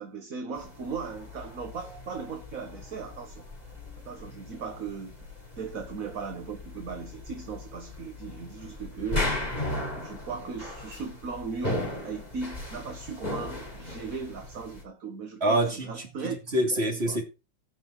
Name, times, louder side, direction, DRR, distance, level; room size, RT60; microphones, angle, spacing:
voice 1, 0.0-3.5 4.0-9.3 10.0-16.4 17.0-17.2, right 5 dB, 50° right, 1.8 m, -37 dB
sound 1, 0.6-14.8, left 2 dB, 20° left, 4.1 m, -37 dB
voice 2, 15.4-15.9 16.2-17.2, right 1 dB, 35° right, 3.0 m, -26 dB
16.5 x 6.0 x 4.8 m
omnidirectional pair, 2.0 m